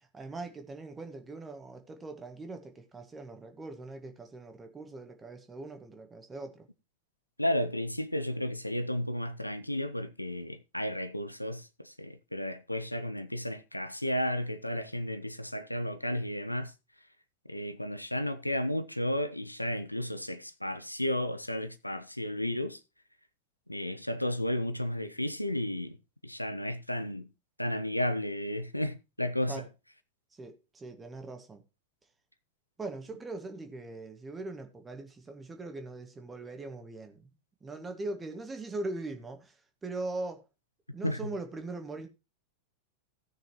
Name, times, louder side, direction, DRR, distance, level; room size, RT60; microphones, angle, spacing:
voice 1, 0.1-6.7 29.5-29.7 30.4-31.6 32.8-37.3 37.6-39.5 39.8-40.4 40.9-42.1, right 2 dB, 15° right, 1.8 m, -41 dB
voice 2, 7.4-16.7 17.5-22.8 23.7-26.0 26.2-27.3 27.6-29.7 41.0-41.3, left 1 dB, 85° left, 0.7 m, -33 dB
17.0 x 6.3 x 2.9 m
figure-of-eight pair, 90°, 0 cm